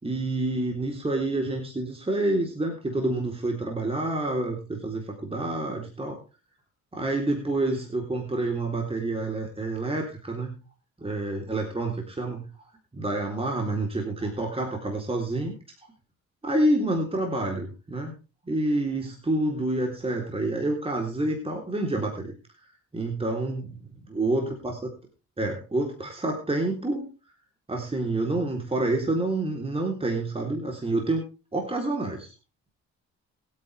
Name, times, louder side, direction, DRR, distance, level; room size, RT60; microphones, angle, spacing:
voice 1, 0.0-6.2 6.9-10.5 11.0-12.4 12.9-15.5 16.4-18.1 18.5-22.3 22.9-23.8 24.1-24.8 25.4-27.1 27.7-31.2 31.5-32.3, right 2 dB, 20° right, 1 dB, 3.5 m, -28 dB
22.5 x 8.8 x 3.4 m, 0.33 s
cardioid pair, 90°, 30 cm